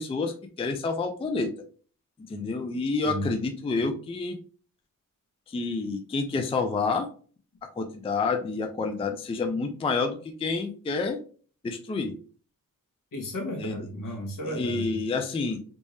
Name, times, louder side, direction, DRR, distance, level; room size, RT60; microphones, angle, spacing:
voice 1, 0.0-1.5 2.3-4.4 5.5-7.1 7.7-11.2 11.6-12.2 13.6-13.8 14.5-15.6, left 4 dB, 20° left, 6 dB, 0.3 m, -29 dB
voice 2, 3.0-3.4 13.1-15.0, equal, 70° left, -1 dB, 1.3 m, -33 dB
3.5 x 2.7 x 3.1 m, 0.41 s
wide cardioid pair, 165°, 33 cm